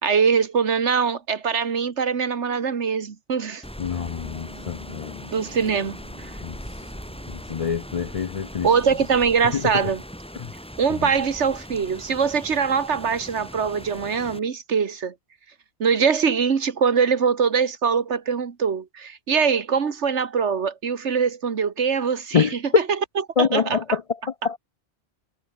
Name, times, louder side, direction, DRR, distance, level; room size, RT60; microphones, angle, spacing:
voice 1, 0.0-3.6 5.3-6.3 8.6-10.0 10.8-15.1 15.8-22.5 22.7-22.8 23.4-24.0, right 6 dB, 90° right, 1.8 m, -23 dB
Rain, 3.6-14.4, equal, 5° left, 7.2 m, -40 dB
voice 2, 3.8-5.3 6.4-6.6 7.3-8.7 9.5-9.9 10.4-10.5 22.3-22.5 23.4-24.0 24.4-24.6, left 7 dB, 55° left, 0.4 m, -26 dB
Piano, 4.2-9.9, left 1 dB, 80° left, 7.2 m, -50 dB
omnidirectional pair, 1.1 m